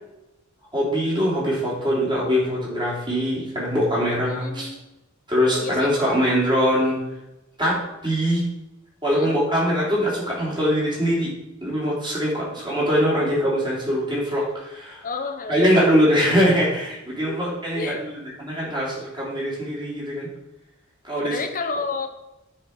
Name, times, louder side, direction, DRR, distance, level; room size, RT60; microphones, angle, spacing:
voice 1, 0.7-4.7 5.3-7.0 7.6-8.4 9.0-11.3 11.6-15.0 15.5-20.3 21.0-21.4, equal, 25° right, -5 dB, 3.1 m, -22 dB
voice 2, 4.2-4.8 5.5-5.9 9.1-9.4 15.0-15.7 16.0-16.1 17.3-17.4 17.7-18.0 21.2-22.1, left 3 dB, 40° left, 6 dB, 0.9 m, -30 dB
9.5 x 4.5 x 4.7 m, 0.94 s
head